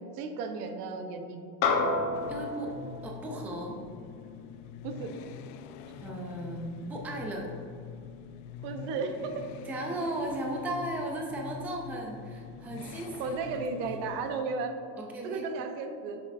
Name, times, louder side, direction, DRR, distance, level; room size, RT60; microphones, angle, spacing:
voice 1, 0.0-1.4 4.8-5.1 8.6-9.4 13.2-14.8 15.2-16.2, right 4 dB, 85° right, 6 dB, 0.9 m, -34 dB
sound 1, 1.6-6.2, left 3 dB, 60° left, 1.1 m, -33 dB
sound 2, 2.1-14.4, left 8 dB, 75° left, 0.5 m, -45 dB
voice 2, 2.3-2.7 3.0-3.8 6.0-7.5 9.6-13.9 15.0-15.5, right 1 dB, 5° right, 0 dB, 0.3 m, -36 dB
7.4 x 7.2 x 2.6 m, 2.7 s
cardioid pair, 155°, 44 cm